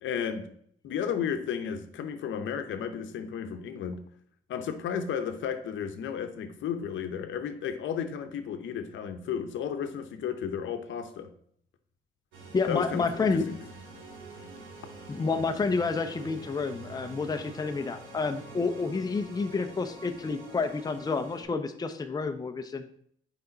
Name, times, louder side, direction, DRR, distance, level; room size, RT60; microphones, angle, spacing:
voice 1, 0.0-0.5 0.8-4.0 4.5-11.3 12.6-13.6, left 7 dB, 75° left, 7 dB, 0.8 m, -33 dB
sound 1, 12.3-21.4, right 3 dB, 80° right, 1.7 m, -46 dB
voice 2, 12.5-13.5 15.1-22.9, left 4 dB, 20° left, 7 dB, 0.6 m, -29 dB
5.6 x 5.0 x 3.9 m, 0.64 s
cardioid pair, 90°, 20 cm